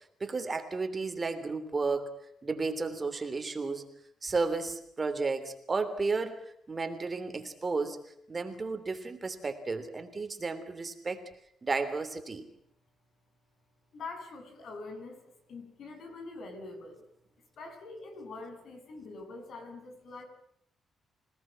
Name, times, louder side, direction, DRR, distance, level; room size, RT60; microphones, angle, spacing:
voice 1, 0.2-2.1 2.4-3.9 4.2-11.2 11.6-12.5, right 4 dB, 25° right, 8 dB, 3.2 m, -33 dB
voice 2, 13.9-17.0 17.6-20.3, left 3 dB, 60° left, 5 dB, 7.9 m, -44 dB
27.0 x 18.5 x 7.6 m, 0.71 s
cardioid pair, 130°, 0 cm